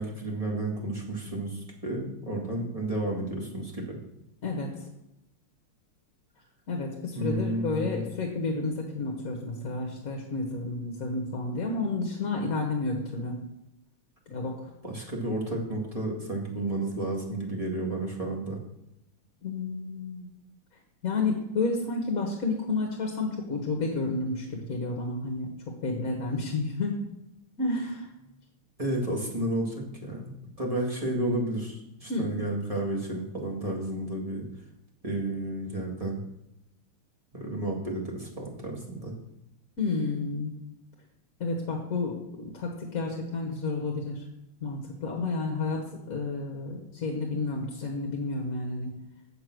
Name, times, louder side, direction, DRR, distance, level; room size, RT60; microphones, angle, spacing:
voice 1, 0.0-4.0 7.1-8.0 14.8-18.6 28.8-34.5 35.0-36.2 37.3-39.1, right 1 dB, 15° right, -1 dB, 1.9 m, -32 dB
voice 2, 4.4-4.7 6.7-13.4 14.3-14.6 19.4-20.3 21.0-25.5 25.8-27.0 27.6-28.1 32.1-32.3 39.8-40.5 41.4-44.2 44.6-48.9, left 3 dB, 45° left, 1 dB, 1.4 m, -31 dB
8.1 x 6.7 x 6.1 m, 0.87 s
omnidirectional pair, 2.4 m